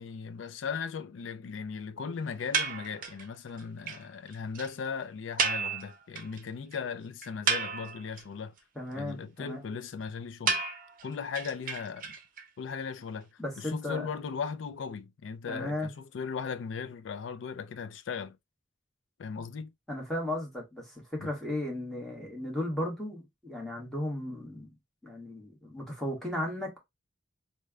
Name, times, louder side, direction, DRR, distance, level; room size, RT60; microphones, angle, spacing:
voice 1, 0.0-8.6 8.9-10.6 11.0-12.1 12.6-18.4 19.2-19.7 21.2-21.3, left 6 dB, 80° left, 0.4 m, -37 dB
sound 1, 2.5-3.3 3.6-3.7 3.9-4.0 4.3-4.4 4.6-4.7 5.4-6.4 6.7-6.8 7.2-8.2 10.5-12.4, right 5 dB, 50° right, 0.6 m, -31 dB
voice 2, 8.7-9.6 13.4-14.1 15.5-15.9 19.9-24.7 25.0-26.8, left 1 dB, 5° left, 1.3 m, -35 dB
3.2 x 2.2 x 3.5 m
head